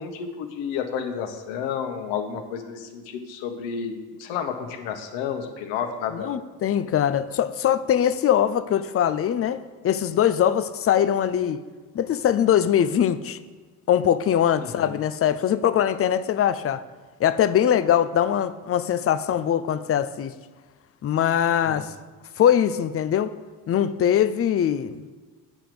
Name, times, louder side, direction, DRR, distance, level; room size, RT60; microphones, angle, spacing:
voice 1, 0.0-3.9 4.2-6.3 14.6-14.9 21.7-21.8, left 7 dB, 65° left, 5 dB, 1.5 m, -31 dB
voice 2, 6.1-9.6 9.8-11.6 11.9-13.4 13.9-16.8 17.2-20.3 21.0-21.9 22.4-23.3 23.7-25.0, left 9 dB, 30° left, 13 dB, 0.6 m, -22 dB
9.0 x 5.9 x 6.8 m, 1.3 s
hypercardioid pair, 60°, 48 cm